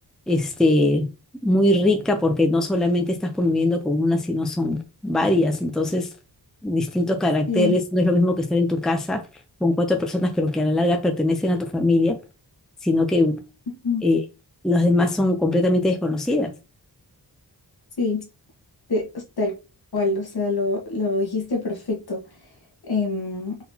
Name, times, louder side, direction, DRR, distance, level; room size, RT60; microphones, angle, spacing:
voice 1, 0.3-1.1 1.4-6.1 6.6-9.2 9.6-12.2 12.8-13.4 14.0-14.2 14.6-16.5, left 2 dB, ahead, 0.5 m, -21 dB
voice 2, 18.0-18.3 18.9-19.6 19.9-22.2 22.9-23.6, left 3 dB, 65° left, 1.4 m, -25 dB
4.0 x 3.8 x 2.8 m
wide cardioid pair, 130°, 40 cm